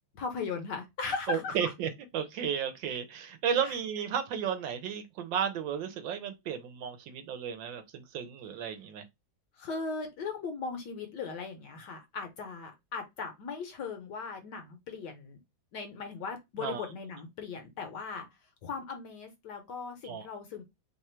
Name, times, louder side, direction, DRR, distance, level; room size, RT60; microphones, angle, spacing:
voice 1, 0.1-1.7 3.6-3.8 9.6-15.4 15.7-18.3 18.6-20.6, left 5 dB, 65° left, 1.1 m, -38 dB
voice 2, 1.3-9.0 16.6-16.8 20.0-20.3, right 8 dB, 75° right, 1.2 m, -33 dB
3.3 x 2.3 x 4.2 m
omnidirectional pair, 2.3 m